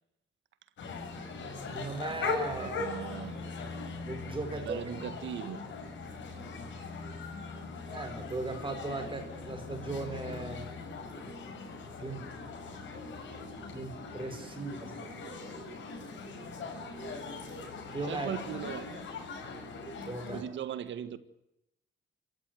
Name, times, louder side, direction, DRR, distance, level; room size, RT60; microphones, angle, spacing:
sound 1, 0.8-20.4, left 4 dB, 70° left, 6.9 m, -40 dB
voice 1, 1.7-2.8 4.0-4.8 7.9-10.6 12.0-12.2 13.7-15.4 17.9-18.3 20.0-20.4, right 3 dB, 25° right, 4.9 m, -38 dB
voice 2, 2.5-3.3 4.5-5.7 13.2-13.3 18.0-19.0 20.3-21.2, right 9 dB, 70° right, 1.8 m, -38 dB
26.0 x 14.5 x 9.2 m
cardioid pair, 90°, 20 cm